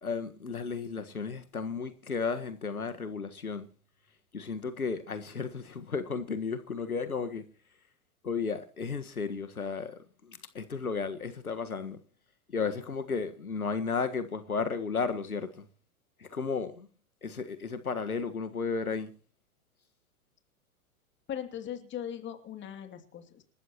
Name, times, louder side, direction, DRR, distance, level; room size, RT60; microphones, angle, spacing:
voice 1, 0.0-3.7 4.3-7.4 8.2-12.0 12.5-15.6 16.2-16.9 17.2-19.1, left 5 dB, 90° left, 1.6 m, -34 dB
voice 2, 21.3-23.4, left 9 dB, 25° left, 2.7 m, -39 dB
27.0 x 13.5 x 3.0 m
figure-of-eight pair, 100°, 42 cm